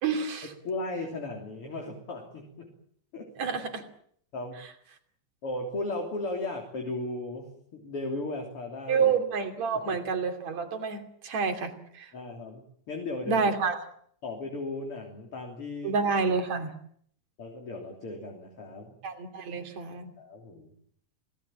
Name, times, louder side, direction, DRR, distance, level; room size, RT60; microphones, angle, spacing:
voice 1, 0.0-0.5 3.4-3.8 8.9-12.1 13.3-13.8 15.8-16.7 19.0-20.1, right 5 dB, 70° right, 6 dB, 4.1 m, -28 dB
voice 2, 0.6-2.7 3.1-3.3 4.3-4.6 5.4-9.2 9.7-10.0 12.1-13.4 14.2-15.9 17.4-18.9 20.2-20.7, left 2 dB, 50° left, 1 dB, 4.1 m, -36 dB
27.5 x 18.0 x 8.9 m, 0.66 s
omnidirectional pair, 3.3 m